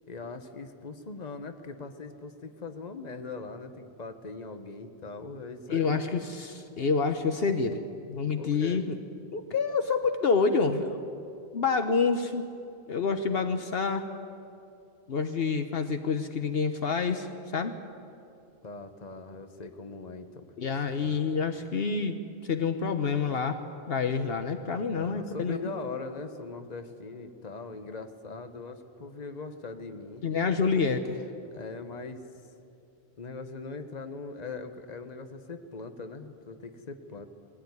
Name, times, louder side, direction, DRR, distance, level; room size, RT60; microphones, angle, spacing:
voice 1, 0.1-6.2 8.4-8.8 18.6-20.5 20.9-21.2 24.9-30.2 31.5-32.2 33.2-37.3, left 4 dB, 40° left, 8 dB, 1.3 m, -40 dB
voice 2, 5.7-9.0 9.3-11.0 11.5-12.5 12.9-14.0 15.1-17.7 20.6-23.6 23.9-25.7 30.2-31.2, left 5 dB, 65° left, 8 dB, 1.1 m, -28 dB
21.0 x 16.0 x 9.7 m, 2.6 s
omnidirectional pair, 1.1 m